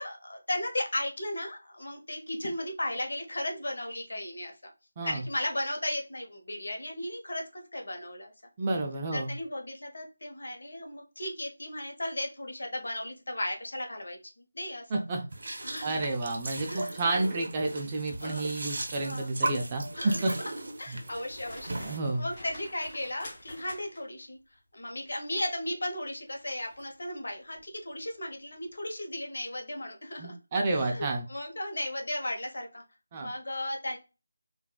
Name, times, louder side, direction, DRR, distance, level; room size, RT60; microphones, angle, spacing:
voice 1, 0.0-4.5 5.0-8.3 9.1-14.2 14.5-14.8 15.6-16.1 16.7-17.0 18.2-18.4 19.0-19.3 19.9-20.4 20.8-24.4 24.7-30.4 30.7-32.8 33.2-34.0, left 1 dB, 65° left, 2 dB, 1.0 m, -35 dB
voice 2, 8.6-9.3 14.9-15.2 15.8-20.3 20.9-21.0 21.8-22.2 30.2-31.2 33.1-33.3, right 2 dB, 15° right, 2 dB, 0.3 m, -30 dB
sound 1, 15.3-22.0, right 2 dB, 45° right, 0.7 m, -37 dB
sound 2, 21.3-24.2 26.6-26.9 27.4-27.6, left 1 dB, 25° left, 1.0 m, -47 dB
3.6 x 2.3 x 2.3 m, 0.30 s
figure-of-eight pair, 180°, 0 cm